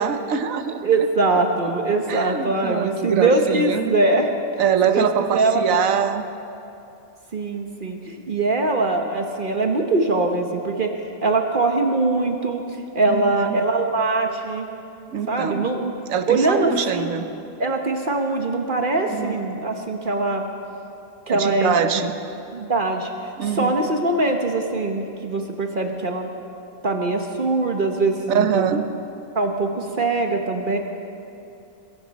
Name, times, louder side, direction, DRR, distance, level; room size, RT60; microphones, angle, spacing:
voice 1, 0.0-0.9 1.9-3.9 4.6-6.3 13.1-13.6 15.1-15.7 16.1-17.3 19.1-19.4 21.3-22.1 23.4-23.8 28.3-28.8, right 7 dB, 85° right, 9 dB, 1.3 m, -23 dB
voice 2, 0.8-4.3 4.9-5.1 5.3-5.7 7.3-10.9 11.2-12.6 12.9-14.7 15.3-15.9 16.3-17.2 17.6-20.4 21.3-22.0 22.5-23.1 23.4-26.3 26.8-28.6 29.3-30.8, right 2 dB, 45° right, 3 dB, 1.2 m, -22 dB
22.5 x 15.5 x 4.1 m, 2.8 s
omnidirectional pair, 1.4 m